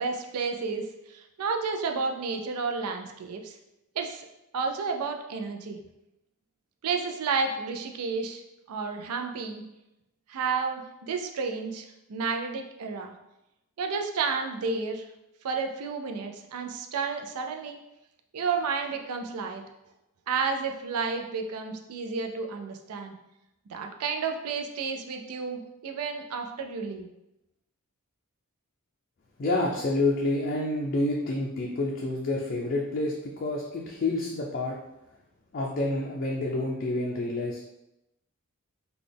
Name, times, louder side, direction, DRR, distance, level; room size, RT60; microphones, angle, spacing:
voice 1, 0.0-3.6 4.0-4.2 4.5-5.8 6.8-8.4 8.7-9.6 10.3-11.8 12.1-13.1 13.8-15.0 15.4-17.8 18.3-19.6 20.3-23.1 23.7-27.1, right 5 dB, 80° right, 4 dB, 0.4 m, -31 dB
voice 2, 29.4-34.8 35.5-37.6, left 2 dB, 40° left, -2 dB, 0.4 m, -28 dB
4.0 x 2.3 x 3.3 m, 0.90 s
head